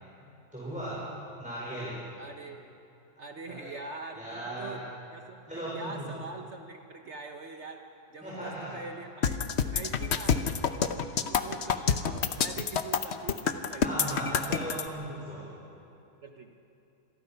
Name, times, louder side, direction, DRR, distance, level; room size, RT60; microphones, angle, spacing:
voice 1, 0.5-1.1 1.4-2.0 3.5-3.7 4.1-4.8 5.5-6.1 8.2-8.8 13.8-15.5, right 1 dB, 5° right, -7 dB, 4.8 m, -37 dB
voice 2, 2.2-2.6 3.2-4.8 5.1-7.8 8.1-9.4 9.7-10.6 11.0-14.5 16.2-16.5, right 3 dB, 50° right, 4 dB, 1.2 m, -44 dB
sound 1, 9.2-14.8, left 7 dB, 50° left, 1.0 m, -27 dB
27.0 x 20.5 x 5.7 m, 2.8 s
omnidirectional pair, 1.7 m